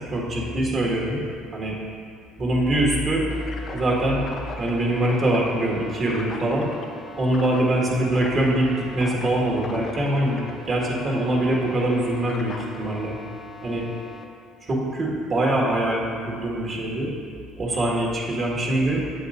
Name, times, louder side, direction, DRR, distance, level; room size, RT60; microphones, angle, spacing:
voice 1, 0.1-1.2 1.5-1.8 2.4-3.3 3.7-4.2 4.6-6.7 7.2-13.2 13.6-13.9 14.6-17.1 17.6-19.1, right 1 dB, 40° right, -2 dB, 1.7 m, -23 dB
sound 1, 3.3-14.2, left 3 dB, 45° left, 0.7 m, -39 dB
8.0 x 7.0 x 2.6 m, 2.2 s
hypercardioid pair, 65°, 0 cm